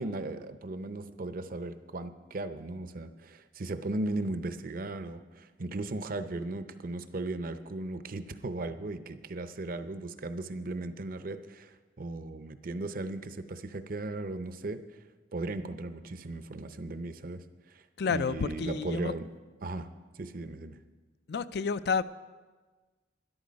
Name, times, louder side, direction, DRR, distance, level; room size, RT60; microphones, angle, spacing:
voice 1, 0.0-14.8 15.3-17.4 17.7-19.3 19.6-19.9 20.2-20.8, right 2 dB, 55° right, 10 dB, 0.7 m, -37 dB
voice 2, 18.0-19.1 21.3-22.0, left 5 dB, 65° left, 14 dB, 0.4 m, -30 dB
12.5 x 11.5 x 5.2 m, 1.3 s
head